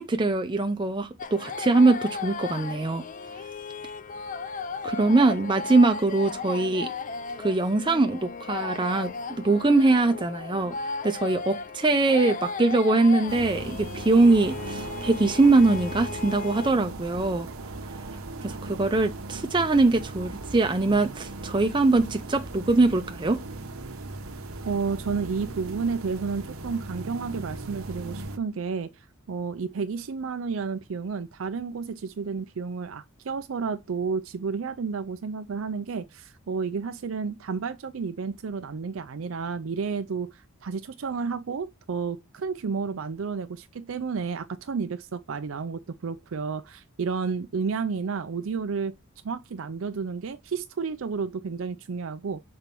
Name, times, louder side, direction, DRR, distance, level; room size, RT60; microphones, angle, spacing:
voice 1, 0.0-3.0 4.8-6.9 7.4-9.1 9.4-10.8 11.0-17.5 18.4-23.4, right 3 dB, 25° right, 0.6 m, -22 dB
sound 1, 1.2-16.7, left 4 dB, 40° left, 0.5 m, -36 dB
sound 2, 13.3-28.4, right 2 dB, 90° right, 1.0 m, -38 dB
voice 2, 24.6-28.9 29.3-48.9 49.2-52.4, right 5 dB, 70° right, 0.5 m, -31 dB
6.0 x 4.3 x 5.3 m
head